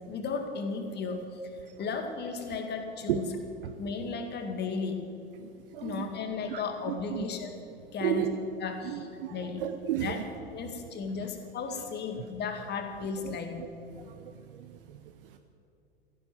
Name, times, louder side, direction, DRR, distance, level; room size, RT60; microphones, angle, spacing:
voice 1, 0.1-1.4 1.8-3.3 3.8-5.1 5.8-7.5 7.9-8.3 8.6-9.6 10.0-10.2 10.5-13.5, left 5 dB, 35° left, 5 dB, 2.1 m, -35 dB
voice 2, 5.4-6.2 6.5-7.2 8.0-8.4 8.8-10.3 11.2-11.3 12.2-12.3 13.2-13.7 13.9-15.4, right 11 dB, 60° right, 7 dB, 0.9 m, -35 dB
14.5 x 10.5 x 7.6 m, 2.5 s
figure-of-eight pair, 85°, 31 cm